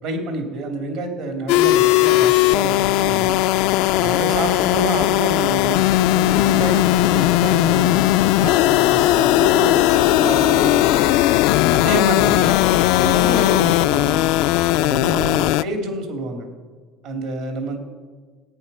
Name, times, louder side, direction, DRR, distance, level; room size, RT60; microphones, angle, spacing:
voice 1, 0.0-3.4 4.0-8.0 8.4-11.1 11.7-12.6 12.9-14.2 14.7-16.5 17.0-17.8, right 2 dB, 70° right, 3 dB, 2.8 m, -28 dB
sound 1, 1.5-15.6, left 16 dB, 75° left, 0.3 m, -17 dB
16.5 x 9.2 x 5.5 m, 1.4 s
supercardioid pair, 90°, 0 cm